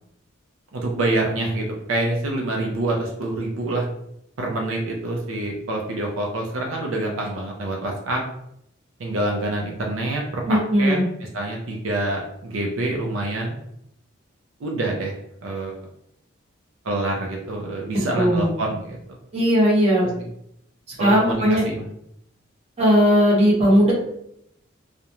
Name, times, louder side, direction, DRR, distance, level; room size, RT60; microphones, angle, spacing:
voice 1, 0.7-3.9 4.4-8.2 9.0-11.0 11.3-13.6 14.6-15.2 15.4-15.9 16.8-19.0 21.0-21.9, right 2 dB, 80° right, 0 dB, 0.5 m, -26 dB
voice 2, 10.5-11.1 17.9-18.5 19.3-20.0 21.0-21.6 22.8-23.9, equal, 30° right, -6 dB, 0.8 m, -18 dB
2.4 x 2.1 x 2.9 m, 0.75 s
head